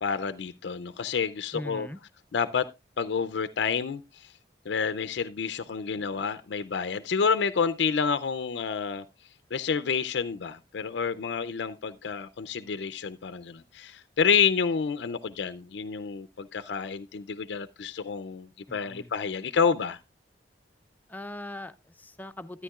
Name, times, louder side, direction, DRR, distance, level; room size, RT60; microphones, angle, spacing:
voice 1, 0.0-1.9 2.3-2.7 3.0-4.3 4.7-9.0 9.5-20.0, left 6 dB, 70° left, 0.4 m, -29 dB
voice 2, 1.5-2.0 18.7-19.1 21.1-22.6, left 1 dB, 10° left, 0.5 m, -40 dB
13.0 x 9.5 x 2.3 m
head